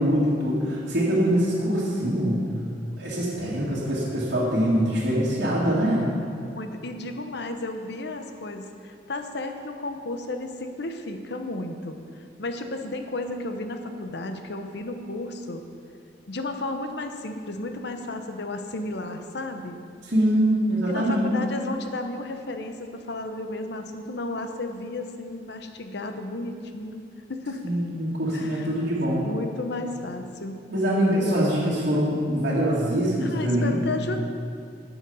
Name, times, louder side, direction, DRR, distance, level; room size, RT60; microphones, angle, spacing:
voice 1, 0.0-2.4 3.0-6.1 20.0-21.4 27.6-29.3 30.7-33.8, equal, 60° right, -10 dB, 2.1 m, -23 dB
voice 2, 6.5-12.0 12.4-15.6 16.3-19.8 20.9-27.0 27.3-27.6 28.3-28.7 29.2-30.6 33.2-34.2, left 2 dB, 65° left, 6 dB, 0.8 m, -33 dB
11.0 x 7.1 x 5.5 m, 2.5 s
head